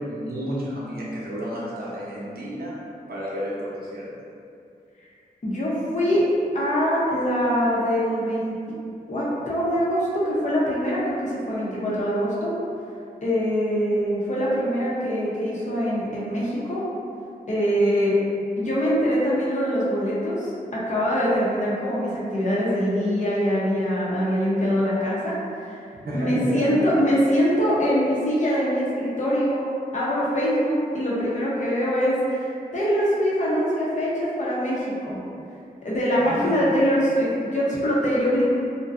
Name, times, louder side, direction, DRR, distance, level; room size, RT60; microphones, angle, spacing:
voice 1, 0.0-2.8 3.1-4.2 26.1-26.8 36.4-36.7, equal, 75° right, -7 dB, 0.6 m, -31 dB
voice 2, 5.4-6.3 6.5-8.5 9.1-12.5 13.2-16.8 17.5-18.1 18.6-25.8 26.1-29.6 29.9-35.2 35.8-38.6, equal, 50° left, -7 dB, 0.7 m, -23 dB
2.5 x 2.1 x 2.4 m, 2.5 s
wide cardioid pair, 80°, 16 cm